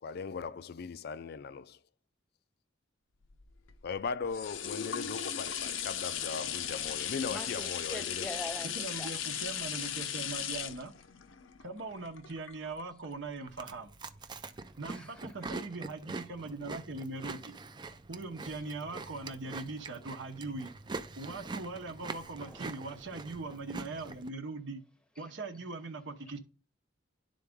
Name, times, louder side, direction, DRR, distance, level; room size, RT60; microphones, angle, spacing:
voice 1, 0.0-1.8 3.8-8.3, left 5 dB, 55° left, 0.4 m, -38 dB
sound 1, 3.3-13.1 13.6-13.7, left 9 dB, 90° left, 0.6 m, -37 dB
voice 2, 7.3-9.1 14.9-15.1 22.4-22.6, left 1 dB, 5° left, 0.8 m, -43 dB
voice 3, 8.7-10.9 11.6-13.9 14.8-17.5 18.1-20.7 21.2-24.8 25.2-26.4, right 3 dB, 70° right, 0.9 m, -41 dB
Chewing mastication, 13.5-24.3, right 3 dB, 25° right, 0.4 m, -44 dB
11.0 x 3.9 x 3.5 m
head